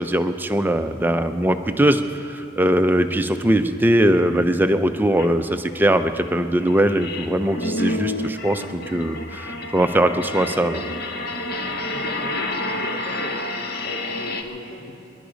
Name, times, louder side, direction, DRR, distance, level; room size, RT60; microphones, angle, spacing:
voice 1, 0.0-10.8, right 1 dB, 10° right, 8 dB, 0.5 m, -21 dB
sound 1, 5.2-5.3 5.7-14.4, left 2 dB, 50° left, 0.9 m, -29 dB
voice 2, 11.9-13.4 13.8-15.1, left 1 dB, 65° left, -3 dB, 1.8 m, -36 dB
24.5 x 11.5 x 5.2 m, 2.8 s
head